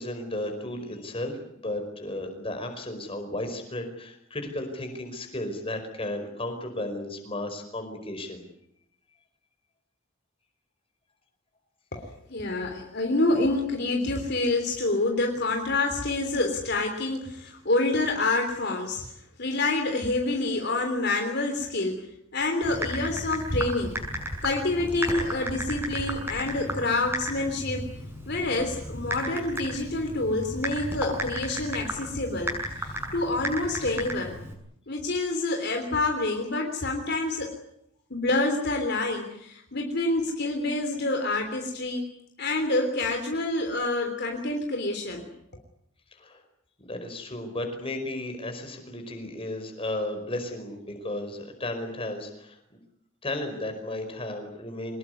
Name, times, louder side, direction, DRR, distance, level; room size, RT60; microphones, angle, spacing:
voice 1, 0.0-8.4 46.1-46.4 46.8-52.8 53.2-55.0, left 1 dB, 25° left, 5 dB, 5.1 m, -34 dB
voice 2, 12.3-19.0 19.4-22.1 22.3-23.9 24.4-27.9 28.3-34.4 34.9-37.6 38.1-42.0 42.4-45.3, left 2 dB, 50° left, 3 dB, 3.4 m, -27 dB
Typing, 22.6-34.5, equal, 10° right, 6.5 m, -34 dB
24.5 x 20.5 x 9.6 m, 0.78 s
head